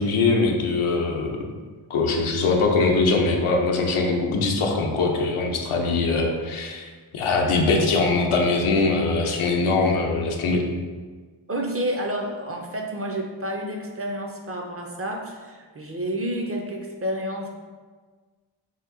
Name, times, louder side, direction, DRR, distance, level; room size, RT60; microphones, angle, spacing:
voice 1, 0.0-1.4 1.9-10.6, left 3 dB, 80° left, 1 dB, 0.6 m, -22 dB
voice 2, 11.5-17.5, right 1 dB, 30° right, 1 dB, 0.4 m, -30 dB
2.9 x 2.6 x 3.6 m, 1.4 s
wide cardioid pair, 75°, 49 cm